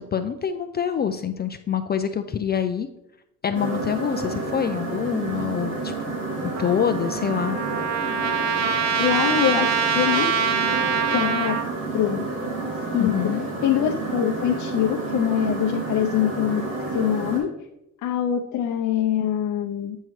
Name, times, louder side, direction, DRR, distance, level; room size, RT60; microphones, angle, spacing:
voice 1, 0.0-2.9 3.4-6.2 6.4-7.6 13.0-13.5, left 8 dB, 30° left, 8 dB, 0.4 m, -26 dB
sound 1, 3.5-17.4, right 3 dB, 85° right, 2.7 m, -30 dB
Trumpet, 6.5-11.7, right 6 dB, 60° right, 0.8 m, -24 dB
voice 2, 9.0-10.3 11.1-11.6 11.9-12.2 12.9-13.2 13.6-16.6 16.9-17.5 18.0-20.0, left 10 dB, 70° left, 1 dB, 0.6 m, -23 dB
8.8 x 5.5 x 3.1 m, 0.85 s
cardioid pair, 110°, 31 cm